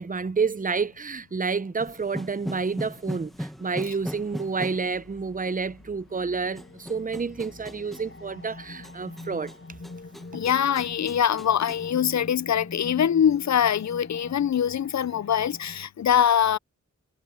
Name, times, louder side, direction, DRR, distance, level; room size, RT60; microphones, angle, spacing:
voice 1, 0.0-9.5, right 5 dB, 25° right, 0.7 m, -29 dB
sound 1, 1.8-11.9, equal, ahead, 1.4 m, -40 dB
sound 2, 5.7-15.9, left 3 dB, 40° left, 5.0 m, -44 dB
voice 2, 10.3-16.6, left 9 dB, 60° left, 0.5 m, -23 dB
cardioid pair, 50°, 31 cm